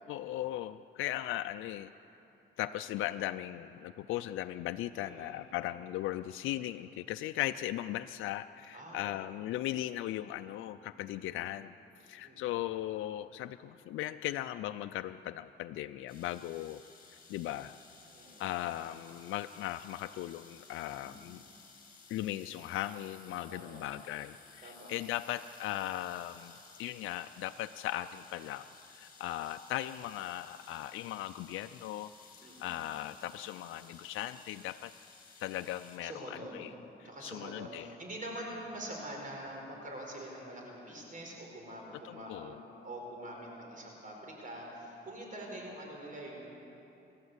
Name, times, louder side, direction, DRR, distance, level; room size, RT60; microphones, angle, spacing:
voice 1, 0.1-1.9 2.6-11.7 12.0-16.8 17.3-17.7 18.4-21.4 22.1-28.7 28.9-32.1 32.6-34.9 35.4-36.7 37.0-37.9 42.0-42.6, left 14 dB, 85° left, 9 dB, 0.5 m, -38 dB
voice 2, 5.0-5.4 8.7-9.2 11.1-11.4 12.2-12.5 18.1-18.5 20.8-21.2 23.5-23.9 24.6-24.9 32.4-32.8 36.0-36.6 37.0-46.4, right 1 dB, 40° right, 0 dB, 5.0 m, -45 dB
sound 1, 16.1-36.0, left 5 dB, 45° left, 5.9 m, -57 dB
28.0 x 12.5 x 8.1 m, 3.0 s
cardioid pair, 90°, 20 cm